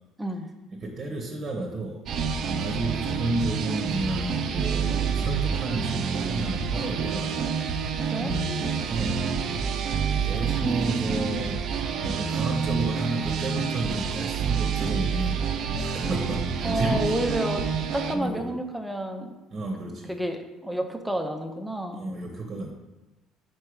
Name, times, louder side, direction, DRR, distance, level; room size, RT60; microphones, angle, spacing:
voice 1, 0.7-2.0 2.5-7.5 8.1-9.3 10.2-11.6 11.9-15.4 15.8-17.2 18.1-18.5 19.5-20.1 21.9-22.7, right 2 dB, 40° right, 0 dB, 1.0 m, -32 dB
sound 1, 2.1-18.2, right 6 dB, 55° right, 0.5 m, -28 dB
voice 2, 10.6-11.3 16.6-17.6 17.9-19.3 20.1-22.0, right 1 dB, 5° right, 5 dB, 0.7 m, -30 dB
4.7 x 4.4 x 4.8 m, 1.1 s
supercardioid pair, 100°, 0 cm